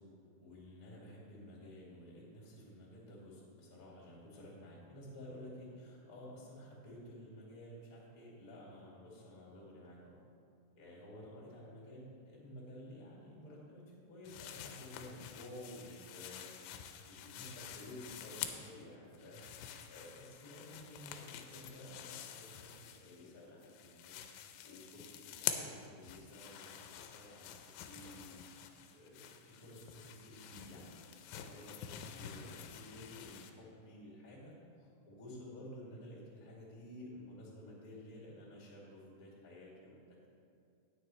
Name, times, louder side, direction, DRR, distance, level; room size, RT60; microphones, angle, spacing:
voice 1, 0.4-10.2 10.7-16.5 16.8-22.7 23.0-40.0, left 1 dB, 30° left, -4 dB, 1.7 m, -53 dB
sound 1, 14.2-18.8 19.1-23.3 23.6-33.5, left 9 dB, 90° left, 3.0 m, -47 dB
18.0 x 6.5 x 3.2 m, 2.4 s
omnidirectional pair, 5.1 m